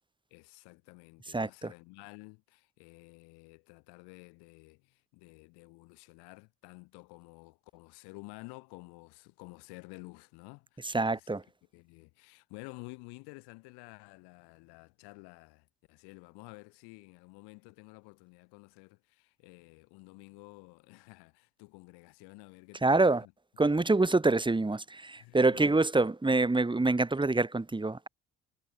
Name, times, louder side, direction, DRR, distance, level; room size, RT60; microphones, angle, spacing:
voice 1, 0.3-11.4 11.7-23.3 25.2-25.8, left 29 dB, 80° left, 3.1 m, -52 dB
voice 2, 1.3-1.7 10.8-11.4 22.8-23.3 23.6-28.1, right 2 dB, 10° right, 1.4 m, -26 dB
hypercardioid pair, 60°, 39 cm